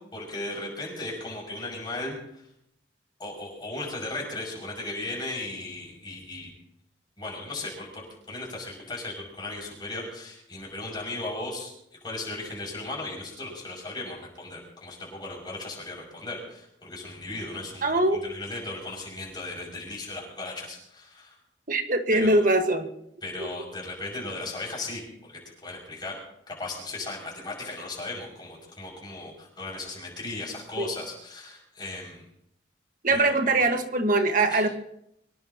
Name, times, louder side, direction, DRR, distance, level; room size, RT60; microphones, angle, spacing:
voice 1, 0.0-2.4 3.2-6.5 7.2-11.7 12.0-21.3 22.1-22.4 23.2-26.1 26.6-32.3 33.1-33.7 34.5-34.6, left 2 dB, 25° left, -3 dB, 6.5 m, -37 dB
voice 2, 17.8-18.2 21.7-22.9 23.4-23.5 30.8-30.9 33.0-34.7, right 2 dB, 45° right, 5 dB, 1.7 m, -22 dB
24.5 x 18.5 x 3.0 m, 0.77 s
head